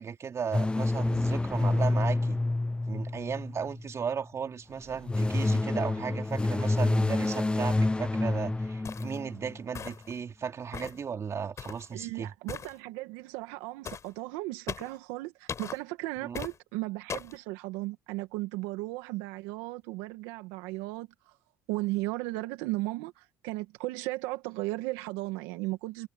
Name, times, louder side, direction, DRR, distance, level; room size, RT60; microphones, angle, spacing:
voice 1, 0.0-2.4 2.9-12.3 16.2-16.4, right 6 dB, 40° right, 3.5 m, -35 dB
sound 1, 0.5-3.9 4.8-9.6, left 2 dB, 15° left, 1.2 m, -28 dB
sound 2, 8.8-9.2 9.7-10.2 10.7-11.0 11.6-11.9 12.5-12.7 13.8-14.1 14.7-15.0 15.5-15.8 16.3-16.6 17.1-17.4, left 7 dB, 45° left, 6.2 m, -39 dB
voice 2, 11.9-21.4 21.7-26.1, right 20 dB, 85° right, 1.9 m, -36 dB
supercardioid pair, 75°, 7 cm